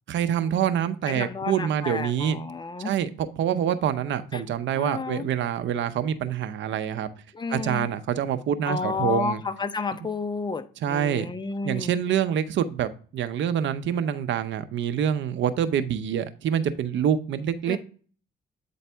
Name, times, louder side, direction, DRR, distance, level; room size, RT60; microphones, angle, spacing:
voice 1, 0.1-2.4 2.8-7.1 7.5-9.4 10.8-11.3 11.6-17.8, right 9 dB, 70° right, 0.7 m, -26 dB
voice 2, 1.1-2.9 4.3-4.4 4.7-5.3 7.3-7.9 8.7-11.9 17.7-17.8, left 4 dB, 20° left, 0.7 m, -31 dB
8.4 x 4.0 x 3.4 m
cardioid pair, 90°, 20 cm